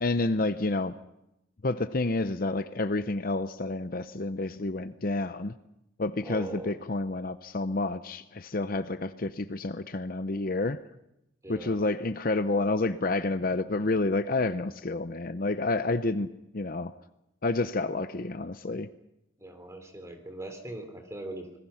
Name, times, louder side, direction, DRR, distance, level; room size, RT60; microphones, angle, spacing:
voice 1, 0.0-0.9 1.6-5.5 6.0-10.8 11.5-16.9 17.4-18.9, left 2 dB, 45° left, 11 dB, 0.7 m, -29 dB
voice 2, 6.2-6.8 11.4-11.8 19.4-21.6, right 2 dB, 15° right, 6 dB, 3.1 m, -41 dB
26.5 x 20.0 x 5.7 m, 0.85 s
head